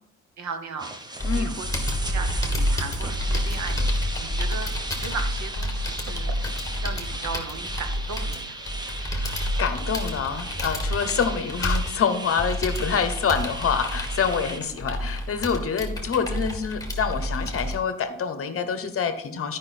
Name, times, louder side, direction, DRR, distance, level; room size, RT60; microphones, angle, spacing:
voice 1, 0.4-0.9 1.3-1.7 2.0-4.7 5.0-6.5 6.8-8.6 11.1-11.2 14.5-14.8, right 5 dB, 65° right, 7 dB, 1.1 m, -36 dB
sound 1, 0.8-14.6, right 1 dB, 15° right, 0.7 m, -37 dB
voice 2, 1.2-1.6 9.0-19.6, left 6 dB, 45° left, 10 dB, 0.9 m, -26 dB
Computer keyboard, 1.2-17.8, equal, 10° left, 1.5 m, -29 dB
12.0 x 5.3 x 4.2 m, 0.80 s
wide cardioid pair, 150°, 31 cm